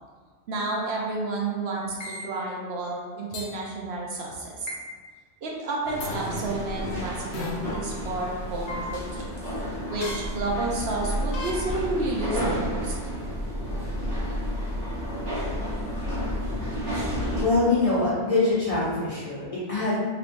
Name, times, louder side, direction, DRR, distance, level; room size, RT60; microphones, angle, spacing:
voice 1, 0.5-4.7 5.4-9.3 9.9-13.0, right 2 dB, 70° right, -2 dB, 0.8 m, -31 dB
sound 1, 2.0-2.2 3.3-3.5 4.7-4.8 6.0-6.1 7.3-7.5 8.7-8.8 10.0-10.2 11.3-11.5, left 2 dB, 75° left, 0.9 m, -34 dB
sound 2, 5.8-17.4, equal, 85° right, 1.2 m, -31 dB
voice 2, 17.4-20.0, left 3 dB, 35° left, -9 dB, 0.8 m, -24 dB
3.1 x 3.0 x 2.5 m, 1.5 s
omnidirectional pair, 1.2 m